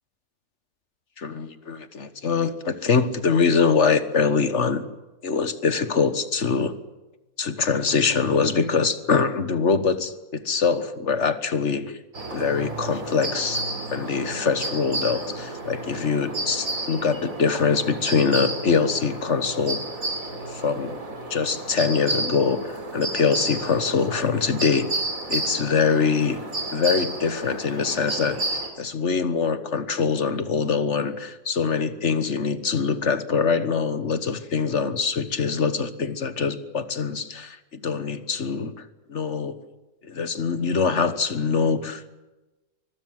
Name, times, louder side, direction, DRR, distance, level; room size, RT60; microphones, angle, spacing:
voice 1, 1.2-4.8 5.2-6.7 7.4-12.0 12.3-13.6 13.9-19.8 20.5-21.0 21.3-24.9 25.3-26.4 26.7-39.6 40.0-42.1, left 5 dB, 50° left, 11 dB, 1.6 m, -24 dB
sound 1, 12.1-28.7, right 2 dB, 65° right, 3.7 m, -32 dB
24.0 x 21.5 x 7.7 m, 1.1 s
omnidirectional pair, 1.6 m